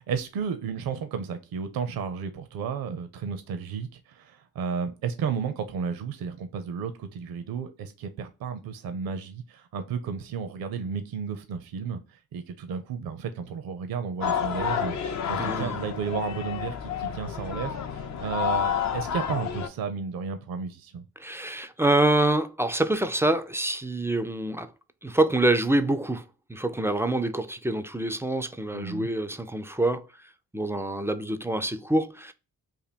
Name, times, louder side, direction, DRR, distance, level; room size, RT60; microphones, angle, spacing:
voice 1, 0.0-12.0 12.3-21.0 28.7-29.1, right 6 dB, 70° right, 0.6 m, -33 dB
sound 1, 14.2-19.7, left 8 dB, 45° left, 0.6 m, -30 dB
voice 2, 15.4-15.8 21.2-24.7 25.0-26.2 26.5-30.0 30.5-32.3, right 1 dB, 5° right, 0.4 m, -26 dB
2.9 x 2.6 x 4.1 m
supercardioid pair, 55°, 38 cm